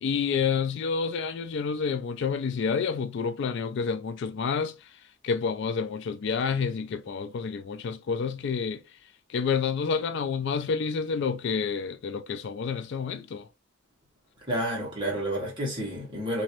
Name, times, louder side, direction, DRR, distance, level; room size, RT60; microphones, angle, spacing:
voice 1, 0.0-4.7 5.2-8.8 9.3-13.4, left 5 dB, 60° left, 0.3 m, -29 dB
voice 2, 14.5-16.4, right 1 dB, 25° right, 1.5 m, -30 dB
3.0 x 2.7 x 2.9 m
head